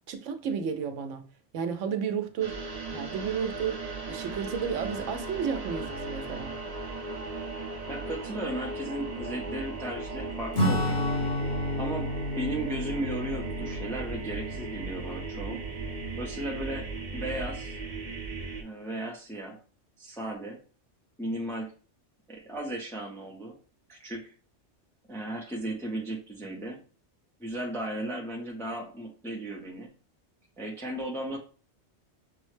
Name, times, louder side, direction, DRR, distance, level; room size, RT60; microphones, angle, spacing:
voice 1, 0.1-1.3 1.5-2.6 2.9-6.6, right 7 dB, 85° right, 1.0 m, -32 dB
sound 1, 2.4-18.6, right 3 dB, 40° right, 0.7 m, -37 dB
voice 2, 7.9-11.1 11.8-15.6 16.2-17.8 18.6-19.6 20.0-20.6 21.2-21.7 22.3-23.6 23.9-24.3 25.1-26.8 27.4-29.9 30.6-31.4, right 1 dB, 5° left, 0.5 m, -35 dB
Acoustic guitar / Strum, 10.5-16.5, left 1 dB, 60° left, 1.3 m, -32 dB
6.1 x 2.1 x 3.1 m
omnidirectional pair, 1.2 m